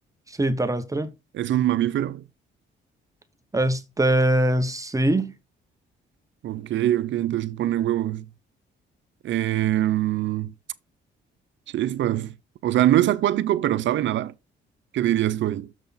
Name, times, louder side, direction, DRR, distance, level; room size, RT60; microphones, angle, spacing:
voice 1, 0.3-1.1 3.5-5.3, right 1 dB, 15° right, 1.0 m, -22 dB
voice 2, 1.3-2.2 6.4-8.3 9.2-10.5 11.7-12.4 12.6-14.3 14.9-15.7, right 13 dB, 70° right, 0.7 m, -23 dB
7.0 x 6.2 x 4.0 m
cardioid pair, 90°, 20 cm